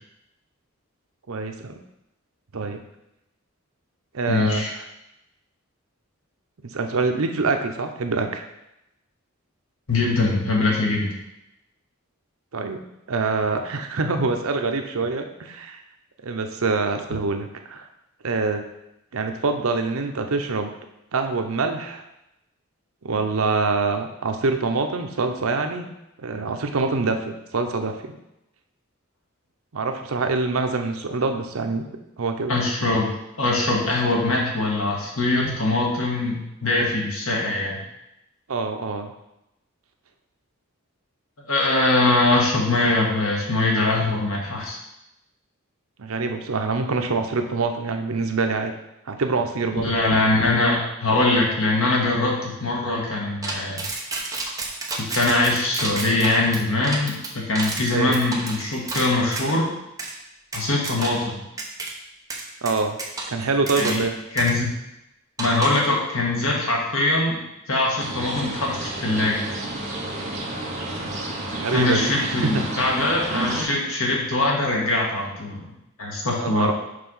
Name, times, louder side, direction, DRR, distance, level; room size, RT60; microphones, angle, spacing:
voice 1, 1.3-1.8 2.5-2.8 4.1-4.8 6.6-8.4 12.5-12.8 13.1-15.8 16.2-17.9 18.2-18.6 19.1-20.7 21.1-22.0 23.0-25.9 26.2-28.1 29.7-31.8 32.2-32.5 38.5-39.1 46.0-48.7 49.1-49.9 57.9-58.2 62.6-63.0 63.3-64.1 71.5-72.6 73.3-73.7 76.4-76.7, right 3 dB, 85° right, 5 dB, 0.7 m, -25 dB
voice 2, 4.3-4.7 9.9-11.1 32.5-33.1 33.4-37.8 41.4-44.8 49.7-53.8 55.0-59.7 60.5-61.4 63.7-64.0 64.3-64.7 65.4-67.4 67.7-69.4 71.7-76.7, left 2 dB, 80° left, -2 dB, 1.6 m, -22 dB
sound 1, 53.4-59.6 60.0-60.1 60.5-61.3 61.6-61.9 62.3-64.1 64.4-64.5 65.4-65.9, right 3 dB, 15° right, 0.8 m, -31 dB
sound 2, 68.0-73.6, right 1 dB, 35° right, 1.2 m, -31 dB
6.7 x 3.3 x 5.5 m, 0.88 s
head